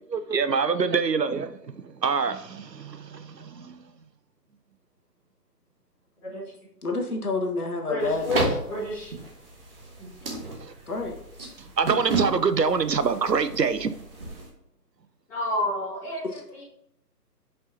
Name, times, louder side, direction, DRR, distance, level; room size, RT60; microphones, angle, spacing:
voice 1, 0.1-3.8 10.6-10.7 11.6-13.9, right 5 dB, 80° right, 12 dB, 0.8 m, -25 dB
voice 2, 6.8-8.6 10.9-11.2 16.2-16.4, left 3 dB, 65° left, 1 dB, 1.7 m, -29 dB
voice 3, 7.9-9.1 10.0-10.1 15.3-16.2 16.6-16.7, left 1 dB, 5° left, -10 dB, 1.5 m, -29 dB
sound 1, 8.0-14.5, right 3 dB, 35° right, 1.5 m, -34 dB
10.5 x 5.4 x 2.9 m, 0.76 s
figure-of-eight pair, 145°, 49 cm